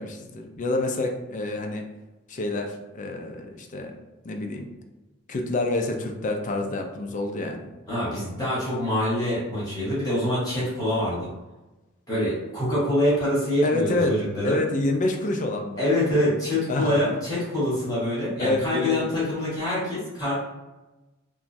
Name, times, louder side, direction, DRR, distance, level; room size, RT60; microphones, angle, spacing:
voice 1, 0.0-1.9 2.3-4.0 4.2-4.7 5.3-7.7 13.6-14.2 14.4-15.8 16.7-17.0 18.4-19.2, left 2 dB, 35° left, 3 dB, 0.4 m, -27 dB
voice 2, 7.9-11.3 12.1-14.6 15.8-20.3, left 1 dB, 20° left, -9 dB, 1.1 m, -25 dB
2.9 x 2.3 x 2.6 m, 1.1 s
head